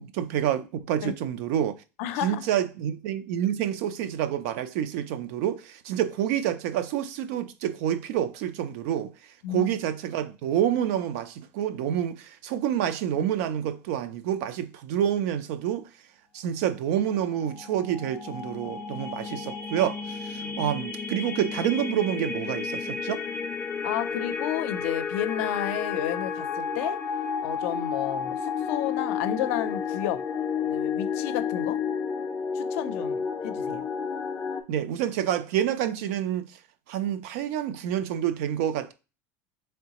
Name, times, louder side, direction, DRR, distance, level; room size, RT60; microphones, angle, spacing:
voice 1, 0.0-1.8 2.2-9.1 9.5-15.9 16.3-23.2 34.7-36.5 36.9-38.9, right 10 dB, 80° right, 0.5 m, -28 dB
voice 2, 2.0-2.4 9.4-9.8 20.4-20.6 23.8-27.0 27.4-30.2 30.6-31.8 32.5-33.8, left 11 dB, 80° left, 0.5 m, -31 dB
sound 1, 17.1-34.6, left 6 dB, 20° left, 0.4 m, -32 dB
3.8 x 3.3 x 2.8 m
supercardioid pair, 130°, 8 cm